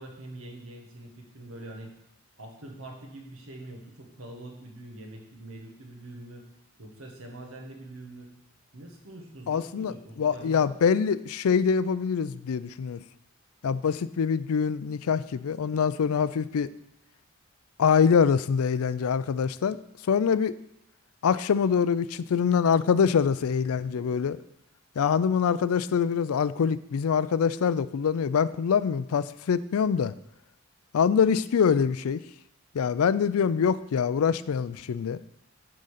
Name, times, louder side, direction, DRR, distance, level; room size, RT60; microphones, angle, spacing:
voice 1, 0.0-1.9 2.4-6.4 6.8-8.3 8.7-10.8, right 1 dB, 75° right, 2 dB, 1.6 m, -44 dB
voice 2, 9.5-13.0 13.6-16.7 17.8-19.8 20.1-20.5 21.2-24.4 25.0-30.1 30.9-32.2 32.7-35.2, left 6 dB, 80° left, 16 dB, 0.4 m, -24 dB
9.4 x 3.9 x 6.6 m, 0.79 s
head